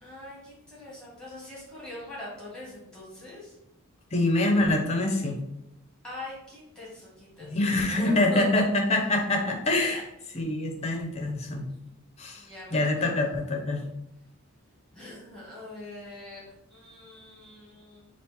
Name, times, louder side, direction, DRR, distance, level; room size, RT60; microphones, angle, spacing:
voice 1, 0.0-3.5 6.0-8.7 9.8-10.0 12.3-13.2 14.9-16.4 16.7-18.1, left 1 dB, 5° left, -6 dB, 1.7 m, -43 dB
voice 2, 4.1-5.4 7.4-10.0 10.3-11.7 12.2-12.4 12.7-13.8, left 2 dB, 30° left, 2 dB, 0.7 m, -25 dB
5.9 x 2.5 x 3.5 m, 0.81 s
head